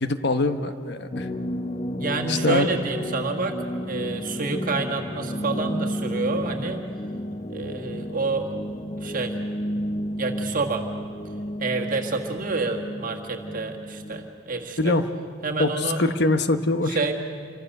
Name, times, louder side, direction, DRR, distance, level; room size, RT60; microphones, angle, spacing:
voice 1, 0.0-1.3 2.3-2.7 14.8-15.0 15.6-17.0, left 2 dB, 55° left, 9 dB, 1.1 m, -23 dB
sound 1, 1.1-14.4, equal, 30° left, 0.8 m, -32 dB
voice 2, 2.0-3.6 3.9-6.8 7.5-8.5 9.0-9.3 10.2-10.8 11.6-14.9 15.4-16.0 16.9-17.1, right 3 dB, 40° right, 2 dB, 1.6 m, -28 dB
27.5 x 24.5 x 6.6 m, 2.3 s
head